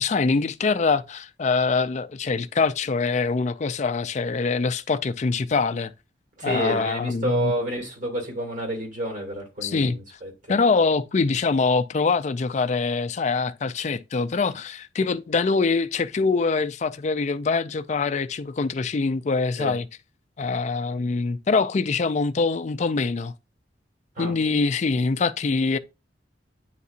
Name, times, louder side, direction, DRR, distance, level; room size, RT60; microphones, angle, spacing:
voice 1, 0.0-5.9 6.4-7.5 9.6-10.0 10.5-19.9 20.4-23.3 24.2-25.8, left 4 dB, 40° left, 0.4 m, -24 dB
voice 2, 6.4-10.3 19.6-19.7 24.2-24.4, right 1 dB, 45° right, 2.5 m, -29 dB
9.2 x 4.1 x 2.5 m
head